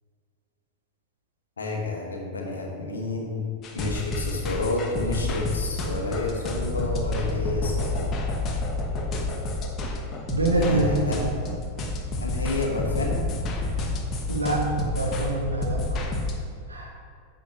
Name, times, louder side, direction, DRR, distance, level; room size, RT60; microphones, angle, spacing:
voice 1, 1.6-3.4 3.7-8.2 10.5-11.2 12.2-13.2, left 2 dB, 70° left, 0 dB, 1.4 m, -30 dB
sound 1, 3.6-16.3, left 2 dB, 30° left, 1.1 m, -29 dB
voice 2, 10.3-11.1 14.3-15.8 16.7-16.9, right 2 dB, 80° right, -1 dB, 1.4 m, -25 dB
9.8 x 7.3 x 2.9 m, 2.3 s
figure-of-eight pair, 90°, 0 cm